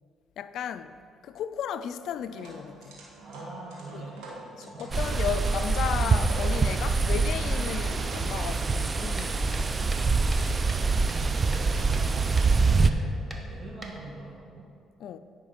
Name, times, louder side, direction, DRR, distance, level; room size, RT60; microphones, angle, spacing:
voice 1, 0.4-1.0 1.2-3.0 3.9-4.0 4.6-9.9 15.0-15.2, left 8 dB, 70° left, 0.4 m, -34 dB
sound 1, 2.1-8.4, right 3 dB, 90° right, 1.9 m, -45 dB
voice 2, 3.2-5.0 10.9-14.7, right 2 dB, 50° right, 1.6 m, -42 dB
sound 2, 4.9-12.9, right 4 dB, 30° right, 0.4 m, -25 dB
sound 3, 8.8-10.8 11.1-12.1 12.4-12.5 12.8-13.0 13.3-14.3, right 1 dB, 15° right, 1.2 m, -44 dB
10.5 x 5.7 x 5.1 m
cardioid pair, 90°, 0 cm